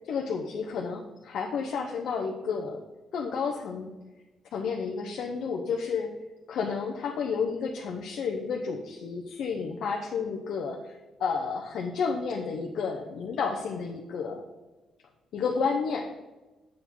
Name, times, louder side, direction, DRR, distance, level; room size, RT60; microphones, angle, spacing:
voice 1, 0.0-2.8 3.1-3.9 4.5-6.1 6.5-14.4 15.3-16.1, left 5 dB, 70° left, 1 dB, 0.8 m, -31 dB
7.6 x 4.8 x 5.4 m, 1.1 s
cardioid pair, 90°, 0 cm